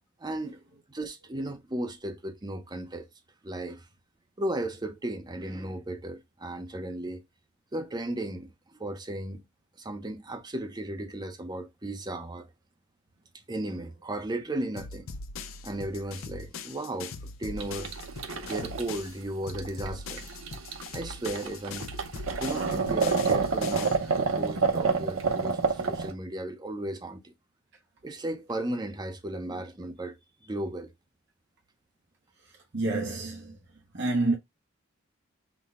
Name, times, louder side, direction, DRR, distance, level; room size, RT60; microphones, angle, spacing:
voice 1, 0.2-0.6 0.9-3.1 3.4-3.8 4.4-7.2 7.7-9.4 9.8-12.5 13.5-15.1 15.6-17.9 18.5-20.2 20.9-21.9 22.4-27.3 28.0-30.2 30.4-30.9, right 1 dB, 20° right, 0.7 m, -35 dB
sound 1, 14.8-19.2 19.5-24.1, left 4 dB, 85° left, 0.6 m, -41 dB
sound 2, 17.6-26.1, right 4 dB, 85° right, 0.8 m, -29 dB
voice 2, 32.7-33.6 33.9-34.4, right 2 dB, 60° right, 0.9 m, -28 dB
6.0 x 2.2 x 3.6 m
head